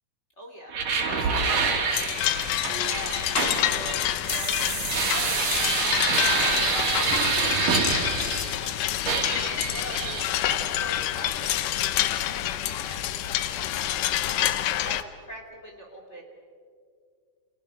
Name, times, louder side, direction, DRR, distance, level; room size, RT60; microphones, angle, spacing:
voice 1, 0.4-1.2 1.5-2.4 2.9-4.7 5.1-14.4 14.8-16.2, equal, 20° left, 1 dB, 3.0 m, -44 dB
sound 1, 0.7-8.7 9.1-10.3, right 5 dB, 80° right, 4.3 m, -27 dB
sound 2, 1.9-15.0, left 13 dB, 80° left, 2.4 m, -27 dB
30.0 x 27.5 x 5.0 m, 2.1 s
omnidirectional pair, 3.7 m